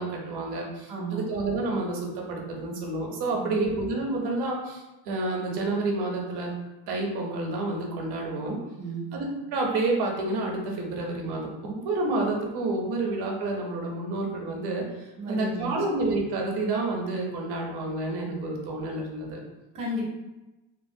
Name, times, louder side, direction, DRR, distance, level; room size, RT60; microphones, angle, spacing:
voice 1, 0.0-6.5 6.9-8.6 9.1-19.4, right 2 dB, 60° right, 1 dB, 0.6 m, -29 dB
voice 2, 0.9-1.3 3.3-3.6 8.8-9.1 15.2-15.8 19.7-20.1, right 1 dB, 15° right, -6 dB, 0.4 m, -33 dB
2.9 x 2.1 x 2.5 m, 1.0 s
cardioid pair, 180°, 45 cm